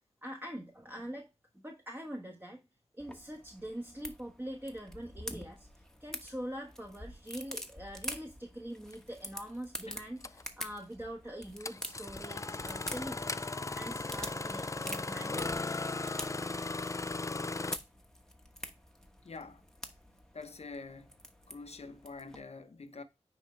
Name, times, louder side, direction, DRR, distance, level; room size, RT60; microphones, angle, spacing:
voice 1, 0.2-1.3 1.6-2.6 3.0-10.2 10.6-15.6, equal, 15° right, 1.3 m, -44 dB
sound 1, 3.0-22.4, equal, 5° left, 1.2 m, -47 dB
Engine starting, 8.9-9.0 10.2-10.4 11.6-17.8, left 3 dB, 25° left, 0.4 m, -37 dB
voice 2, 19.2-19.6 20.3-21.2 21.5-23.0, left 3 dB, 65° left, 0.9 m, -46 dB
9.6 x 3.7 x 3.2 m
wide cardioid pair, 70°, 12 cm